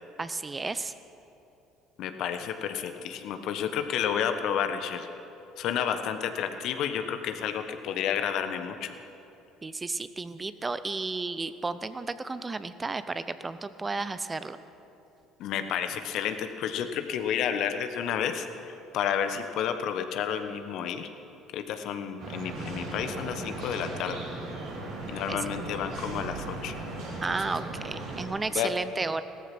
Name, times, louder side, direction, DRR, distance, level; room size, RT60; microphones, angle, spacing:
voice 1, 0.2-0.9 9.6-14.6 25.3-25.5 27.2-29.2, right 3 dB, 25° right, 13 dB, 0.7 m, -33 dB
voice 2, 2.0-5.1 5.6-8.9 15.4-21.1 21.5-24.2 25.1-26.8 28.5-28.7, left 8 dB, 60° left, 8 dB, 1.2 m, -31 dB
sound 1, 22.2-28.2, right 2 dB, 60° right, 4.0 m, -37 dB
17.0 x 14.0 x 6.1 m, 2.8 s
hypercardioid pair, 60°, 0 cm